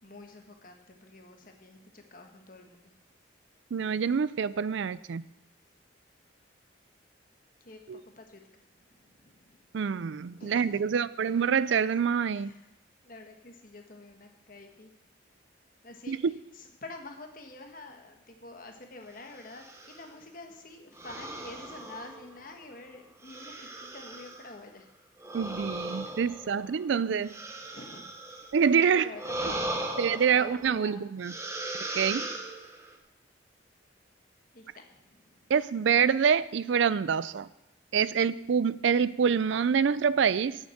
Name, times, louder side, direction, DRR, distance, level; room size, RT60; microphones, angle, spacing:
voice 1, 0.0-2.9 7.6-9.6 10.3-11.0 12.3-12.6 13.0-14.9 15.8-16.2 16.5-24.9 26.0-26.5 27.7-28.0 28.3-29.9 30.3-31.1 34.5-35.5, left 2 dB, 45° left, 4 dB, 1.4 m, -48 dB
voice 2, 3.7-5.2 7.9-8.0 9.7-12.5 16.1-16.3 25.3-27.3 28.5-29.1 30.0-31.3 32.0-32.2 35.5-37.5 37.9-40.6, right 6 dB, 70° right, 17 dB, 0.4 m, -26 dB
sound 1, 19.4-20.1 21.0-22.6 23.2-24.5 25.2-28.6 29.1-30.8 31.2-33.0, right 2 dB, 15° right, 0.9 m, -38 dB
8.9 x 7.3 x 7.8 m, 0.87 s
head